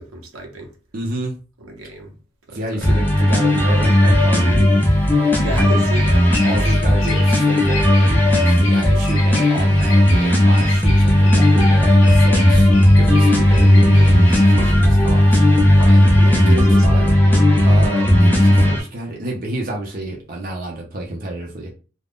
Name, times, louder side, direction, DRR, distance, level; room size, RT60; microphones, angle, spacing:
voice 1, 0.0-0.8 1.6-2.2 2.5-3.0 5.4-7.2 15.6-17.2, equal, 90° right, 0.9 m, -32 dB
voice 2, 0.9-1.4 2.5-4.7 6.4-12.7 13.0-15.3 15.9-17.1 17.6-21.7, right 1 dB, 45° right, 0.6 m, -29 dB
sound 1, 2.8-18.8, left 1 dB, 10° left, 0.5 m, -14 dB
Bird vocalization bird call bird song, 3.5-16.8, left 3 dB, 65° left, 0.7 m, -34 dB
2.5 x 2.2 x 3.5 m
head